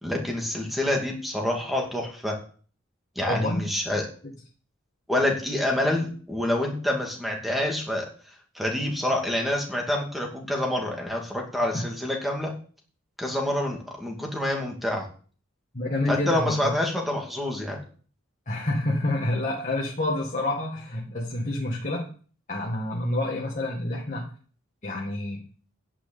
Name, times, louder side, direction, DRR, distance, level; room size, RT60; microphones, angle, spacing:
voice 1, 0.0-2.4 3.2-4.0 5.1-8.0 8.5-12.5 13.2-15.1 16.1-17.8, left 1 dB, ahead, 1 dB, 2.5 m, -27 dB
voice 2, 3.3-3.6 11.7-11.8 15.7-16.7 18.5-22.1 22.5-24.3 24.8-25.4, left 1 dB, 35° left, -2 dB, 1.8 m, -28 dB
10.0 x 6.3 x 8.6 m, 0.43 s
head